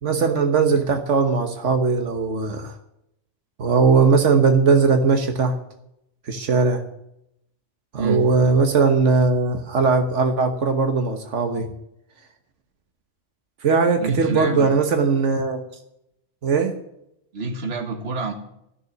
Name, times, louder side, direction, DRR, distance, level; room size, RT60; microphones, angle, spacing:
voice 1, 0.0-2.7 3.6-5.6 6.3-6.8 7.9-11.7 13.6-15.6 16.4-16.7, right 4 dB, 90° right, 6 dB, 1.5 m, -19 dB
voice 2, 14.0-14.7 17.3-18.3, right 3 dB, 60° right, 5 dB, 1.8 m, -27 dB
14.0 x 6.8 x 9.9 m, 0.80 s
omnidirectional pair, 1.2 m